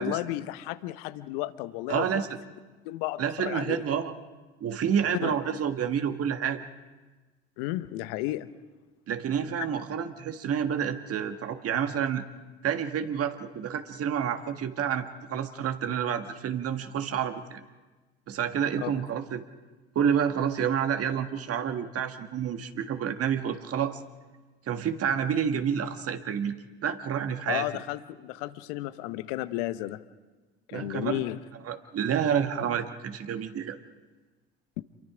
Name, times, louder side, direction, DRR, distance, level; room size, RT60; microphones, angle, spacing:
voice 1, 0.0-2.2 2.8-3.8 5.2-5.3 7.6-8.5 9.6-9.7 18.8-18.9 27.5-30.0 30.7-31.4 34.8-34.9, left 16 dB, 70° left, 14 dB, 1.0 m, -33 dB
voice 2, 1.9-2.3 3.2-4.1 4.6-6.6 9.1-12.2 12.6-15.0 15.3-17.6 18.3-19.4 20.0-24.0 24.7-26.6 26.8-27.7 30.7-31.2 31.7-33.8, right 8 dB, 50° right, 8 dB, 1.7 m, -29 dB
28.0 x 23.0 x 5.0 m, 1.3 s
hypercardioid pair, 60°, 31 cm